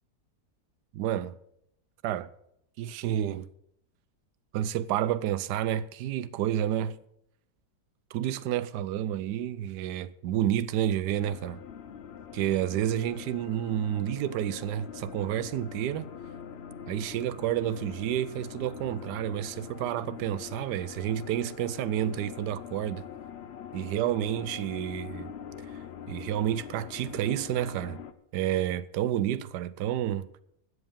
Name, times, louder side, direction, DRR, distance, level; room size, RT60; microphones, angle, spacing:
voice 1, 0.9-1.4 2.0-2.3 2.8-3.5 4.5-7.0 8.1-11.6 12.3-16.1 16.9-23.0 23.7-25.3 26.1-28.0 28.3-30.3, right 11 dB, 85° right, 1.2 m, -30 dB
sound 1, 11.1-28.1, left 8 dB, 50° left, 0.8 m, -43 dB
12.5 x 8.0 x 7.2 m
omnidirectional pair, 1.7 m